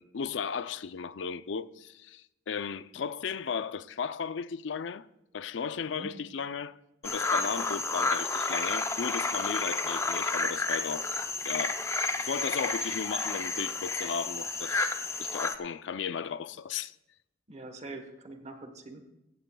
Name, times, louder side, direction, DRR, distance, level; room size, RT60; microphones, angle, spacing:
voice 1, 0.0-5.0 5.3-6.8 7.0-11.1 11.5-14.9 15.2-17.0, left 6 dB, 75° left, 0.4 m, -35 dB
sound 1, 7.0-15.5, left 3 dB, 15° left, 0.5 m, -31 dB
voice 2, 17.5-19.1, right 2 dB, 35° right, 1.1 m, -44 dB
16.0 x 15.0 x 2.3 m
head